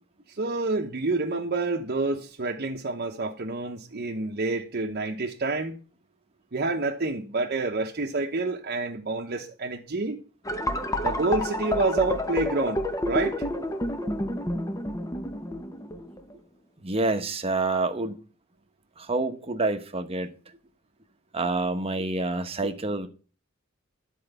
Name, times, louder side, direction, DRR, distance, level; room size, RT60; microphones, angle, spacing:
voice 1, 0.4-5.7 6.5-10.2 11.0-13.4, right 3 dB, 50° right, 1.0 m, -28 dB
sound 1, 10.5-16.3, left 1 dB, 15° left, 0.9 m, -29 dB
voice 2, 16.8-18.2 19.0-20.3 21.3-23.1, right 2 dB, 30° right, 1.0 m, -27 dB
11.0 x 4.7 x 8.0 m
head